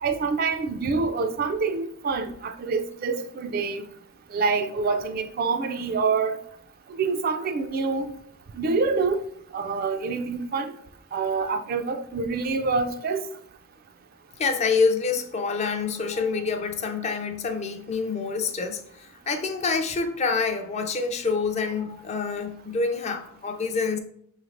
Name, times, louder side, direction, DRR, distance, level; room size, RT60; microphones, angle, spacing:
voice 1, 0.0-3.8 4.3-6.4 6.9-8.1 8.5-9.2 9.5-10.7 11.1-13.2, right 4 dB, 45° right, 0.3 m, -26 dB
voice 2, 14.4-24.0, left 4 dB, 30° left, 0.3 m, -27 dB
5.6 x 3.1 x 2.5 m
head